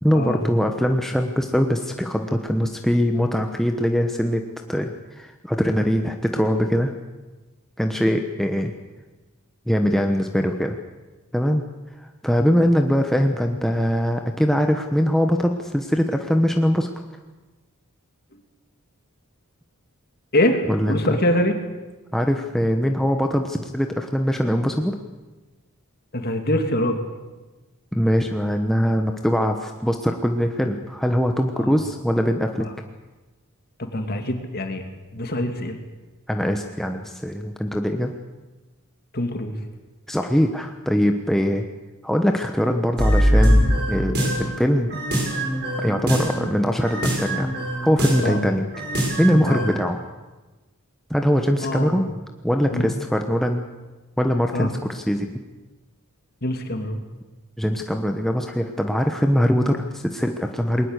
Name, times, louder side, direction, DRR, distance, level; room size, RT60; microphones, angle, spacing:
voice 1, 0.0-6.9 7.8-8.7 9.7-10.8 11.3-11.6 12.2-16.9 20.6-21.2 22.1-24.9 27.9-32.7 36.3-38.1 40.1-41.6 42.0-45.0 45.8-47.5 47.8-48.6 49.2-50.0 51.1-52.1 52.4-53.7 54.2-55.3 57.6-60.9, equal, ahead, 4 dB, 1.1 m, -22 dB
voice 2, 20.3-21.6 26.1-27.0 31.6-31.7 33.8-34.8 35.1-35.8 39.1-39.5 48.2-48.5 49.5-49.6 51.6-52.0 52.7-52.9 54.5-54.7 56.4-57.0, left 1 dB, 45° left, 5 dB, 2.6 m, -24 dB
sound 1, 43.0-44.5 44.9-46.5 46.8-48.4 48.7-49.7, equal, 50° right, 6.4 m, -22 dB
21.0 x 19.5 x 8.2 m, 1.2 s
head